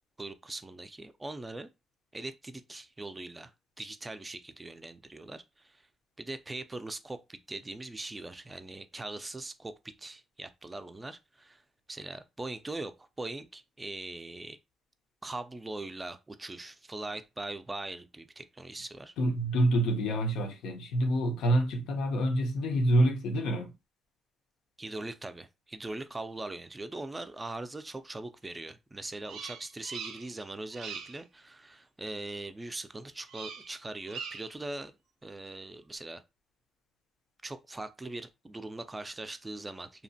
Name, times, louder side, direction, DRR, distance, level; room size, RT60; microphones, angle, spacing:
voice 1, 0.2-1.7 2.1-3.5 3.8-5.9 6.2-11.6 11.9-14.6 15.2-19.1 24.8-34.9 35.2-36.2 37.4-40.0, right 2 dB, 20° right, 0.4 m, -41 dB
voice 2, 19.2-23.7, right 1 dB, 80° left, 0.6 m, -27 dB
Bird vocalization bird call bird song, 29.2-30.4 30.7-31.2 33.3-33.7 34.0-34.6, right 7 dB, 85° right, 0.4 m, -42 dB
2.8 x 2.1 x 2.7 m
cardioid pair, 90°, 0 cm